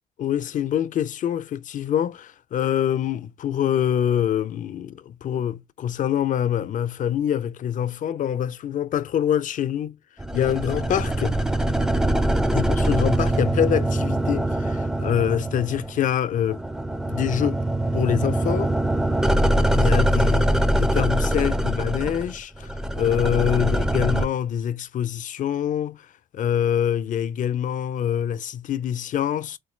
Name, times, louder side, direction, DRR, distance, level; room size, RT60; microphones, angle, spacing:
voice 1, 0.2-10.0 10.3-11.4 12.5-16.6 17.1-17.6 17.9-18.7 19.7-26.1 26.3-29.6, left 9 dB, 60° left, 0.4 m, -25 dB
sound 1, 10.2-16.1 16.4-24.3, right 1 dB, 5° right, 0.4 m, -23 dB
3.9 x 2.2 x 3.1 m
cardioid pair, 110°, 15 cm